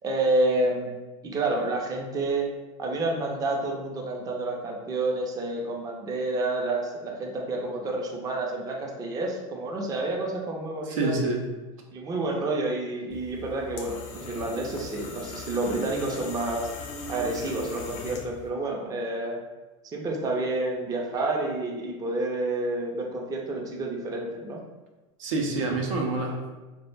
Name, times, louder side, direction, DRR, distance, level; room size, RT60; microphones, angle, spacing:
voice 1, 0.0-0.9 1.2-2.5 2.8-11.3 11.9-16.7 17.1-19.4 19.9-24.6, right 2 dB, 20° right, -1 dB, 0.4 m, -29 dB
voice 2, 10.9-11.4 25.2-26.5, right 3 dB, 85° right, 0 dB, 0.5 m, -27 dB
sound 1, 13.1-18.5, left 3 dB, 65° left, 0.5 m, -39 dB
2.3 x 2.1 x 3.2 m, 1.2 s
supercardioid pair, 110°, 16 cm